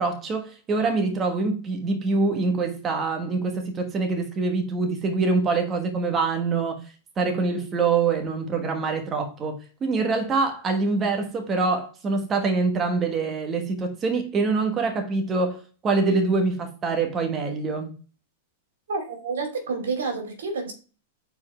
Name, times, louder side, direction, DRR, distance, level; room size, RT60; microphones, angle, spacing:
voice 1, 0.0-17.9, right 4 dB, 20° right, 1.3 m, -25 dB
voice 2, 18.9-20.7, right 4 dB, 90° right, 2.9 m, -29 dB
6.9 x 4.6 x 4.4 m
hypercardioid pair, 140°, 0 cm